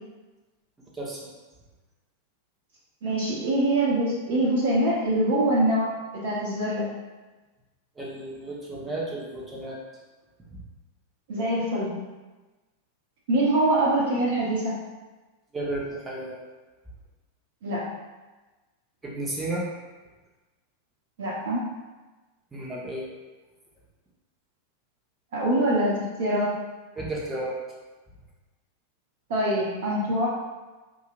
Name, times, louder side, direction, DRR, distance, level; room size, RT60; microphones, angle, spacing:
voice 1, 0.9-1.3 8.0-9.8 10.5-10.6 15.5-16.4 19.0-19.6 22.5-23.1 26.9-27.5, right 1 dB, 15° right, -4 dB, 0.9 m, -33 dB
voice 2, 3.0-6.9 11.3-11.9 13.3-14.8 17.6-17.9 21.2-21.6 25.3-26.5 29.3-30.3, right 1 dB, 55° right, -5 dB, 0.9 m, -24 dB
4.8 x 2.8 x 2.4 m, 1.2 s
figure-of-eight pair, 90°, 0 cm